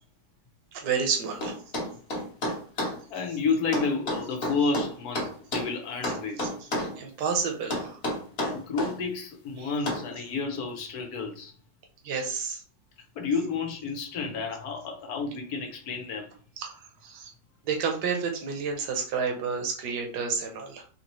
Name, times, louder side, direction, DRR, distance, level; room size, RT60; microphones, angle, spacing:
voice 1, 0.7-1.6 6.4-6.5 7.0-8.0 9.6-9.7 12.0-12.6 16.6-16.7 17.0-17.3 17.6-20.8, right 5 dB, 70° right, 1.4 m, -30 dB
sound 1, 1.4-3.0 3.7-5.7 6.0-7.0 7.7-9.0 9.9-10.1, left 1 dB, 40° left, 1.1 m, -30 dB
voice 2, 3.1-6.4 8.4-11.5 13.1-16.3, left 4 dB, 65° left, 1.3 m, -31 dB
4.2 x 2.8 x 3.0 m
omnidirectional pair, 1.9 m